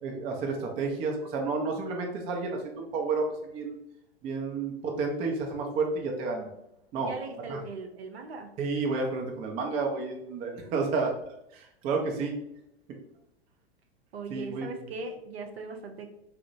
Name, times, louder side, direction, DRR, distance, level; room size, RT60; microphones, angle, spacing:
voice 1, 0.0-3.8 4.2-6.5 6.9-7.1 7.5-7.6 8.6-11.1 11.5-12.3 14.3-14.7, right 4 dB, 20° right, 1 dB, 0.3 m, -31 dB
voice 2, 7.0-8.5 14.1-16.2, right 3 dB, 75° right, 4 dB, 0.6 m, -39 dB
2.8 x 2.0 x 2.5 m, 0.81 s
figure-of-eight pair, 100°, 31 cm